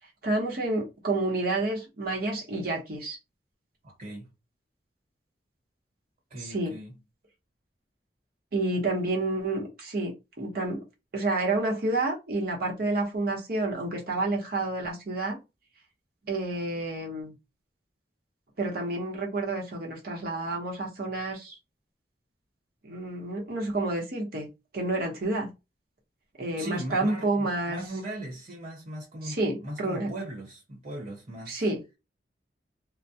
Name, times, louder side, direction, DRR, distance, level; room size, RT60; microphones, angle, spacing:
voice 1, 0.2-3.2 6.4-6.7 8.5-10.8 11.1-15.4 16.2-17.3 18.6-21.6 22.8-25.5 26.4-27.8 29.2-30.1 31.5-31.8, right 2 dB, 55° right, 0.9 m, -29 dB
voice 2, 3.8-4.3 6.3-6.9 26.6-31.6, right 1 dB, 40° right, 1.2 m, -39 dB
2.2 x 2.2 x 2.7 m
head